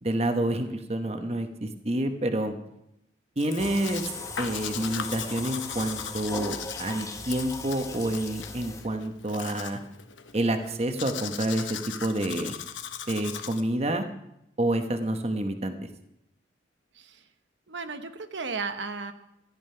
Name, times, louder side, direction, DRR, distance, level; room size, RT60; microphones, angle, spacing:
voice 1, 0.0-2.5 3.4-9.8 10.3-12.5 13.1-14.0 14.6-15.9, right 1 dB, 35° right, 7 dB, 1.0 m, -28 dB
Domestic sounds home sounds, 3.4-13.6, left 8 dB, 90° left, 1.0 m, -39 dB
sound 1, 3.6-9.1, left 3 dB, 15° left, 0.9 m, -39 dB
voice 2, 17.7-19.1, right 4 dB, 75° right, 8 dB, 1.0 m, -34 dB
14.5 x 11.0 x 5.6 m, 0.84 s
head